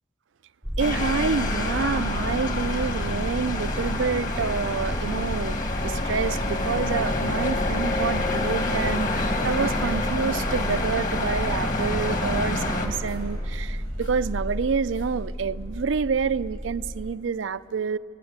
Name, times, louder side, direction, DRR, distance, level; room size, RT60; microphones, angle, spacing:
sound 1, 0.6-17.1, equal, 5° left, 0.6 m, -32 dB
sound 2, 0.8-12.9, left 2 dB, 45° left, 2.0 m, -28 dB
voice 1, 0.8-18.0, right 5 dB, 85° right, 0.5 m, -28 dB
sound 3, 3.0-3.2 3.6-6.9 7.5-9.0 9.4-10.7 11.0-15.1, equal, 80° left, 6.0 m, -53 dB
27.5 x 19.5 x 8.1 m
head